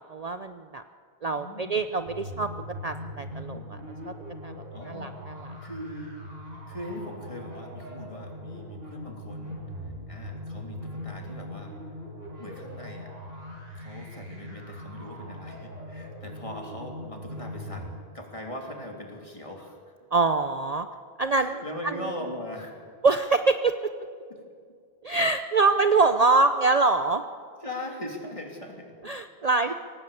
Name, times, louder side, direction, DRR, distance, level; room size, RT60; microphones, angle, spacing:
voice 1, 0.1-0.8 1.2-2.5 2.8-3.8 4.0-4.1 4.4-4.5 4.9-5.5 20.1-20.9 21.2-21.9 23.0-23.7 25.0-27.2 29.0-29.7, right 3 dB, 40° right, 9 dB, 0.7 m, -24 dB
voice 2, 1.4-1.8 4.7-5.2 5.6-6.1 6.7-9.6 9.8-11.7 12.4-13.1 13.7-17.9 18.1-19.9 21.3-22.9 27.6-29.1, left 1 dB, 30° left, 1 dB, 3.3 m, -40 dB
sound 1, 2.0-18.0, equal, 65° right, 5.6 m, -40 dB
23.5 x 18.0 x 8.6 m, 2.1 s
omnidirectional pair, 1.1 m